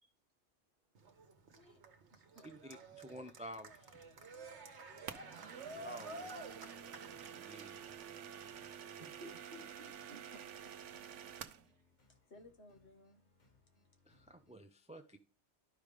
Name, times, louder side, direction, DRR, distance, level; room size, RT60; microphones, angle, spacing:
Cheering, 0.9-8.0, right 2 dB, 70° right, 1.4 m, -51 dB
voice 1, 1.5-1.8 2.1-2.5 10.1-11.3 12.1-13.2, left 1 dB, 65° left, 1.8 m, -61 dB
voice 2, 2.4-3.9 5.7-6.4 7.3-7.8 14.1-15.2, equal, 10° right, 0.4 m, -51 dB
sound 1, 3.5-14.5, left 2 dB, 40° left, 1.4 m, -72 dB
voice 3, 4.7-5.3 9.0-10.2 11.7-11.8, equal, 45° right, 1.4 m, -57 dB
sound 2, 5.1-11.7, right 8 dB, 85° right, 1.0 m, -49 dB
12.5 x 5.1 x 3.2 m
omnidirectional pair, 1.2 m